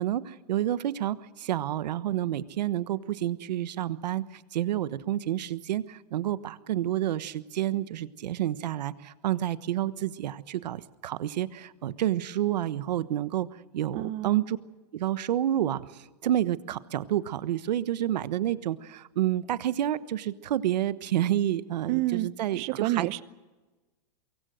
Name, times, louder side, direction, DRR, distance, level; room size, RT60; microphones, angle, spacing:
voice 1, 0.0-4.2 4.5-13.5 13.7-14.6 14.9-23.1, right 12 dB, 80° right, 14 dB, 1.2 m, -29 dB
voice 2, 13.9-14.4 21.9-22.3 22.5-23.2, right 17 dB, 35° right, 17 dB, 0.8 m, -29 dB
24.0 x 23.5 x 6.4 m, 1.2 s
supercardioid pair, 155°, 21 cm